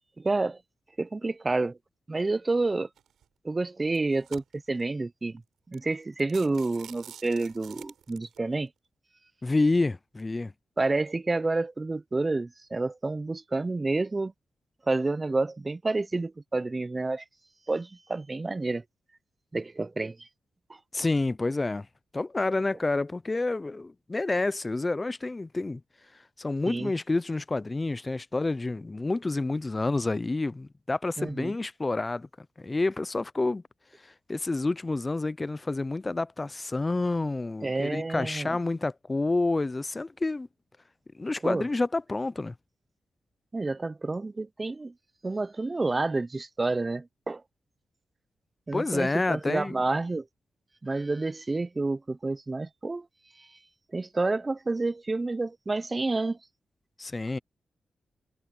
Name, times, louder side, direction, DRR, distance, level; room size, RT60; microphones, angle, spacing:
voice 1, 0.2-0.6 1.0-1.8 2.1-2.9 3.4-5.4 5.7-8.7 10.8-14.3 14.9-17.2 17.7-18.8 19.5-20.3 26.7-26.9 31.2-31.6 37.6-38.6 41.4-41.7 43.5-44.9 45.2-47.4 48.7-50.2 50.8-53.1 53.4-53.5 53.9-56.4, right 3 dB, 30° right, 0.5 m, -29 dB
sound 1, 3.0-3.2 3.8-4.8 5.4-5.5 5.7-5.9 6.2-8.4, right 9 dB, 90° right, 4.3 m, -48 dB
voice 2, 9.4-10.5 20.9-21.9 22.1-25.8 26.4-32.3 32.6-33.6 34.3-40.5 41.2-42.5 48.7-49.8 57.0-57.4, left 2 dB, 30° left, 0.4 m, -28 dB
cardioid pair, 70°, 0 cm